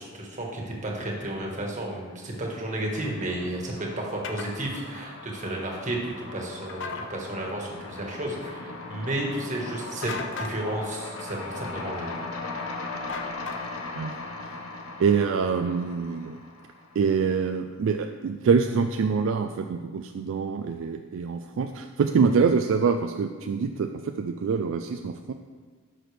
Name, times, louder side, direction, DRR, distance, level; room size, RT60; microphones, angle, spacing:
voice 1, 0.0-12.1, right 1 dB, 35° right, -1 dB, 1.5 m, -32 dB
sound 1, 1.3-1.8 2.1-17.3, left 3 dB, 85° left, 0.9 m, -39 dB
sound 2, 4.2-4.5 6.7-7.1 10.0-10.6 13.1-13.9, left 4 dB, 65° left, 0.6 m, -35 dB
voice 2, 15.0-16.4 17.0-25.3, right 5 dB, 65° right, 6 dB, 0.3 m, -25 dB
11.0 x 6.0 x 3.3 m, 1.5 s
head